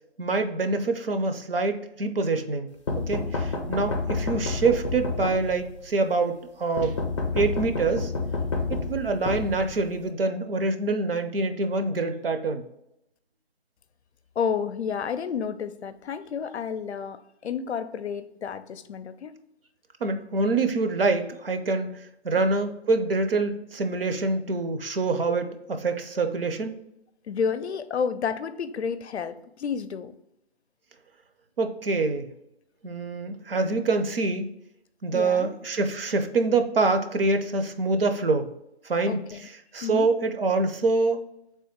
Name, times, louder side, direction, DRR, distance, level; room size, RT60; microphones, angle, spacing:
voice 1, 0.2-2.7 3.1-7.0 7.3-8.1 8.7-12.6 20.0-26.8 31.6-32.3 32.8-34.5 35.0-38.5 38.8-41.2, right 3 dB, 60° right, 7 dB, 0.6 m, -25 dB
sound 1, 2.9-5.8 6.8-10.1, left 3 dB, 30° left, 0.5 m, -29 dB
voice 2, 14.4-19.3 27.3-30.2 35.1-35.5 39.1-39.5 39.8-40.1, left 6 dB, 75° left, 12 dB, 0.5 m, -30 dB
3.4 x 2.9 x 4.4 m, 0.81 s
hypercardioid pair, 165°, 33 cm